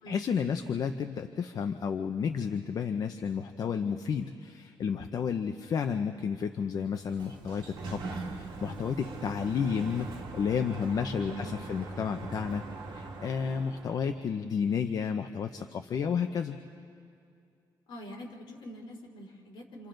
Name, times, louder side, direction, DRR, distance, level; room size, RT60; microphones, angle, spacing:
voice 1, 0.1-16.6, left 6 dB, 45° left, 6 dB, 0.7 m, -32 dB
Sliding door, 6.7-14.1, right 3 dB, 55° right, 2.3 m, -41 dB
voice 2, 11.2-11.6 17.9-19.9, equal, 65° left, -2 dB, 3.6 m, -44 dB
28.5 x 28.0 x 3.9 m, 2.5 s
cardioid pair, 160°, 9 cm